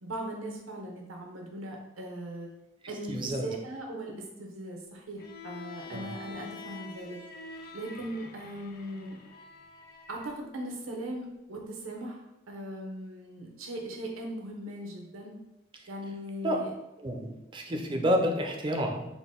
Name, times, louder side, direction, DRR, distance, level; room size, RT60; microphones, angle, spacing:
voice 1, 0.0-2.5 2.9-7.2 7.7-9.2 10.1-12.2 12.5-15.4 15.9-16.7, right 1 dB, 80° right, 1 dB, 0.7 m, -39 dB
voice 2, 3.1-3.5 5.9-6.1 16.4-16.6 17.0-19.1, equal, 25° right, 2 dB, 0.4 m, -29 dB
Bowed string instrument, 5.2-10.4, left 4 dB, 45° left, 0.4 m, -47 dB
3.8 x 2.1 x 3.6 m, 0.95 s
head